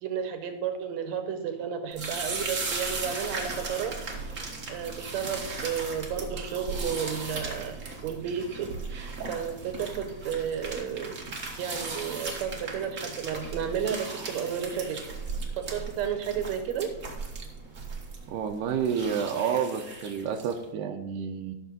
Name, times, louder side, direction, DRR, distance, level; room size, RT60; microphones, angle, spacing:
voice 1, 0.0-4.0 4.7-7.8 8.0-11.1 11.6-15.0 15.6-16.9, right 7 dB, 70° right, 6 dB, 1.9 m, -32 dB
sound 1, 1.9-20.6, right 3 dB, 50° right, 0.8 m, -37 dB
voice 2, 18.3-21.5, right 7 dB, 85° right, 3 dB, 2.3 m, -29 dB
13.5 x 6.4 x 4.0 m, 1.1 s
omnidirectional pair, 3.8 m